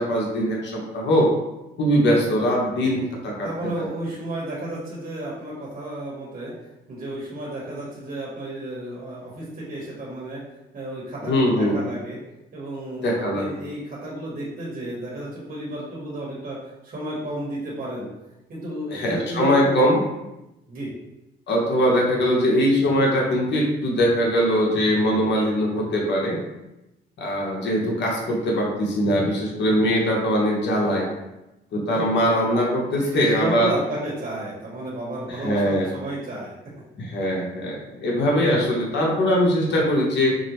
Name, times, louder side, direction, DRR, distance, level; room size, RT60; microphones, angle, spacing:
voice 1, 0.0-1.3 1.8-3.5 3.8-3.9 11.2-11.8 13.0-13.5 18.9-20.0 21.5-26.4 27.2-31.1 31.7-33.7 35.3-35.9 37.0-40.4, equal, 60° left, -2 dB, 1.0 m, -21 dB
voice 2, 3.4-6.5 6.9-10.4 10.7-12.2 12.5-18.1 18.5-19.8 20.7-20.9 32.0-32.1 33.0-36.5, right 1 dB, 45° right, -5 dB, 1.2 m, -32 dB
5.0 x 2.1 x 3.0 m, 0.94 s
cardioid pair, 90°, 20 cm